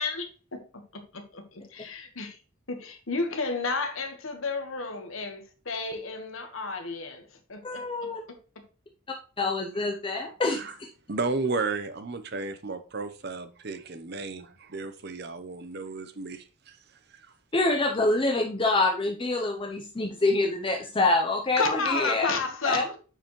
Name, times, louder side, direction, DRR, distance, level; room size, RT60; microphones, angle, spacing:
voice 1, 0.0-2.4 2.7-7.9 21.6-23.0, left 3 dB, 75° left, 1.4 m, -32 dB
voice 2, 7.6-8.2 9.4-10.9 17.5-22.3 22.7-22.8, left 2 dB, 25° left, 0.6 m, -26 dB
voice 3, 11.1-16.8 17.2-17.3, right 3 dB, 50° right, 0.8 m, -33 dB
8.8 x 4.8 x 3.1 m
head